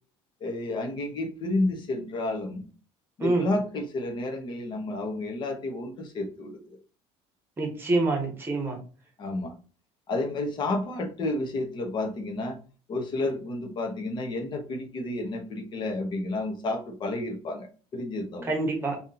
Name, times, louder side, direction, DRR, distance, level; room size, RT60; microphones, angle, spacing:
voice 1, 0.4-2.6 3.2-6.8 9.2-9.6 10.1-12.6 12.9-18.5, left 2 dB, 40° left, 3 dB, 1.0 m, -31 dB
voice 2, 7.6-8.8 18.4-19.0, right 2 dB, 20° right, 2 dB, 1.0 m, -26 dB
2.9 x 2.7 x 3.7 m, 0.37 s
cardioid pair, 150°, 12 cm